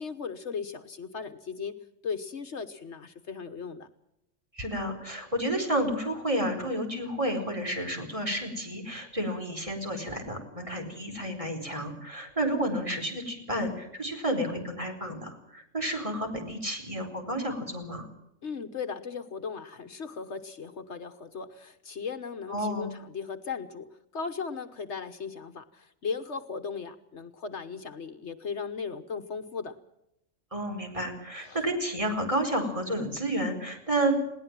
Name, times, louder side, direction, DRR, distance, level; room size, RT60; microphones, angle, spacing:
voice 1, 0.0-3.9 18.4-29.8 31.4-31.6, left 5 dB, 65° left, 9 dB, 1.4 m, -37 dB
voice 2, 4.5-18.1 22.5-22.9 30.5-34.2, right 1 dB, 25° right, 3 dB, 4.5 m, -31 dB
20.5 x 18.5 x 7.4 m, 0.82 s
omnidirectional pair, 1.3 m